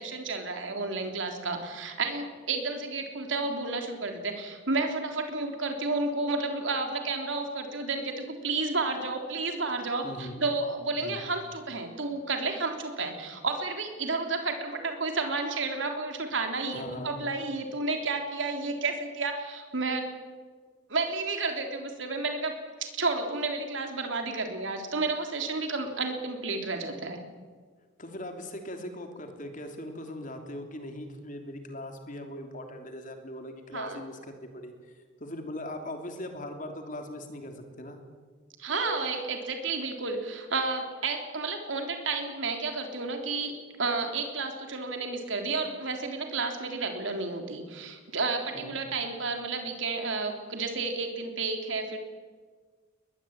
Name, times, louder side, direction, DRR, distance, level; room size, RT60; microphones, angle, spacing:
voice 1, 0.0-20.1 20.9-22.5 22.8-27.2 33.7-34.0 38.6-52.0, right 3 dB, 75° right, 4 dB, 3.5 m, -31 dB
voice 2, 10.0-10.5 11.0-11.2 16.7-17.2 28.0-38.0 48.5-48.8, left 1 dB, 40° left, 5 dB, 3.3 m, -40 dB
22.5 x 20.5 x 9.0 m, 1.5 s
head